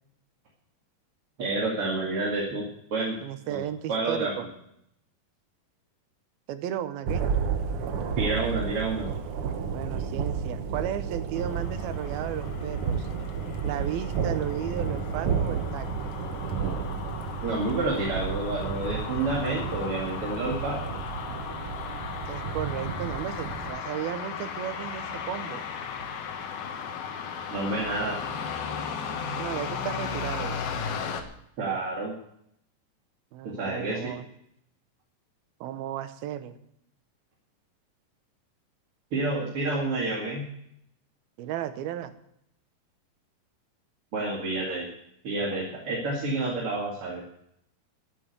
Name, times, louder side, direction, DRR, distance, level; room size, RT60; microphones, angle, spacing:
voice 1, 1.4-2.6 2.9-3.2 3.5-3.6 3.9-4.3 8.2-9.1 17.4-20.9 27.5-28.2 31.6-32.1 33.6-34.0 39.1-40.4 44.1-44.8 45.2-47.2, right 2 dB, 40° right, -3 dB, 2.9 m, -29 dB
voice 2, 3.2-4.5 6.5-7.2 9.7-13.1 13.6-16.2 22.3-25.6 29.4-30.7 33.3-34.2 35.6-36.6 41.4-42.1, right 11 dB, 90° right, 11 dB, 2.9 m, -34 dB
Thunder, 7.0-23.7, right 6 dB, 65° right, 1.4 m, -32 dB
sound 1, 11.4-31.2, left 6 dB, 85° left, 3.3 m, -36 dB
12.5 x 9.4 x 8.1 m, 0.74 s
omnidirectional pair, 4.2 m